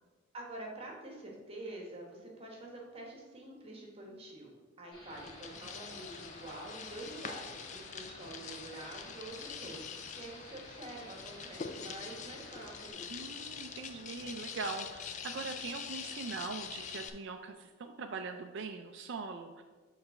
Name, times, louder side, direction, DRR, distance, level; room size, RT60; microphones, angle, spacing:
voice 1, 0.3-4.5 4.8-13.1, right 1 dB, 30° right, -1 dB, 1.2 m, -47 dB
sound 1, 4.9-12.9, left 1 dB, 20° left, 1.9 m, -54 dB
sound 2, 5.1-17.1, left 6 dB, 35° left, 0.4 m, -45 dB
voice 2, 13.1-19.6, right 4 dB, 60° right, 4 dB, 0.4 m, -41 dB
6.7 x 3.2 x 5.7 m, 1.3 s
head